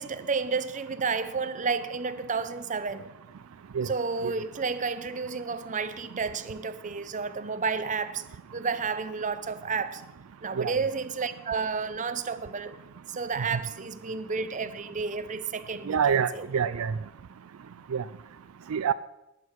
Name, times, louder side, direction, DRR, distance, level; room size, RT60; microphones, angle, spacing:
voice 1, 0.0-3.1 3.8-8.3 8.5-10.1 10.4-12.8 13.1-16.5, right 5 dB, 35° right, 0.7 m, -31 dB
voice 2, 15.9-16.9 17.9-18.0 18.7-18.9, right 7 dB, 70° right, 0.4 m, -26 dB
20.0 x 8.4 x 4.6 m
head